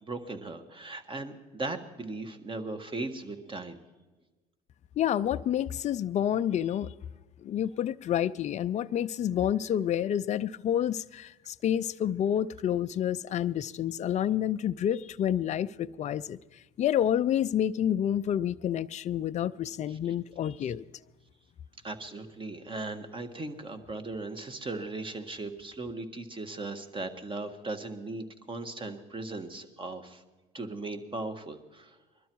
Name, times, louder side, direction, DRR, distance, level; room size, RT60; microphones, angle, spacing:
voice 1, 0.0-3.8 19.9-20.1 20.6-20.7 21.8-30.2 30.5-32.0, right 2 dB, 25° right, 1.6 m, -38 dB
voice 2, 5.0-6.9 7.4-16.4 16.8-20.8, left 10 dB, 40° left, 0.4 m, -29 dB
21.0 x 12.5 x 4.6 m
supercardioid pair, 80°, 19 cm